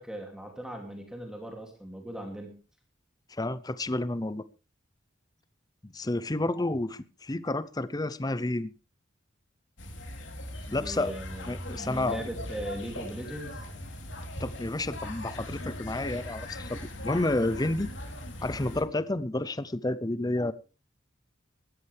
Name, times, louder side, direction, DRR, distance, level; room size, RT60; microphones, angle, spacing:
voice 1, 0.0-2.6 10.6-13.7, right 1 dB, 5° right, 2.7 m, -39 dB
voice 2, 3.3-4.4 5.8-8.7 10.7-11.1 11.5-12.2 14.4-17.9 18.4-20.5, left 2 dB, 20° left, 0.6 m, -30 dB
sound 1, 9.8-18.8, left 1 dB, 70° left, 3.5 m, -39 dB
18.0 x 14.0 x 3.4 m
head